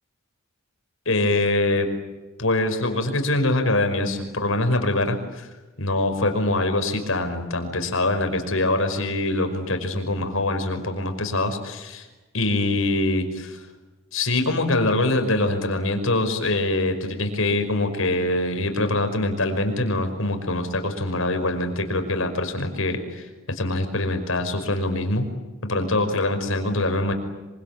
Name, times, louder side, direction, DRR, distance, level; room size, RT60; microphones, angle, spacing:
voice 1, 1.1-1.9 2.4-5.5 5.8-12.1 12.3-13.6 14.1-25.3 25.6-27.1, left 2 dB, 75° left, 7 dB, 5.4 m, -24 dB
26.5 x 25.0 x 9.0 m, 1.1 s
head